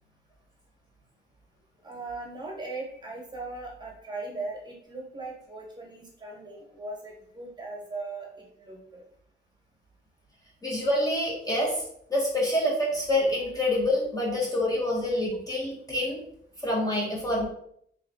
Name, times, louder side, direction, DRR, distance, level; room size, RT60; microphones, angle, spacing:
voice 1, 1.8-9.0, right 3 dB, 20° right, -1 dB, 1.5 m, -39 dB
voice 2, 10.6-11.8 12.1-16.2 16.6-17.5, left 1 dB, 20° left, -3 dB, 1.1 m, -26 dB
3.2 x 2.8 x 4.2 m, 0.68 s
cardioid pair, 90°, 20 cm